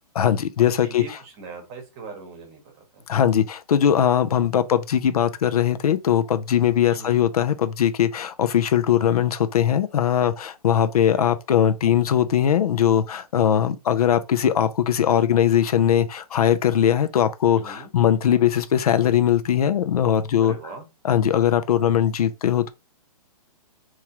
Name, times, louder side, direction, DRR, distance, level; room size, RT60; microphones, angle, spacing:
voice 1, 0.1-1.2 3.1-20.5 21.0-22.7, left 9 dB, 70° left, 0.6 m, -20 dB
voice 2, 0.8-2.6 2.9-3.0 6.9-7.2 11.1-11.3 17.5-17.9 20.4-20.8, right 4 dB, 20° right, 1.0 m, -40 dB
3.6 x 3.1 x 2.9 m
hypercardioid pair, 170°, 20 cm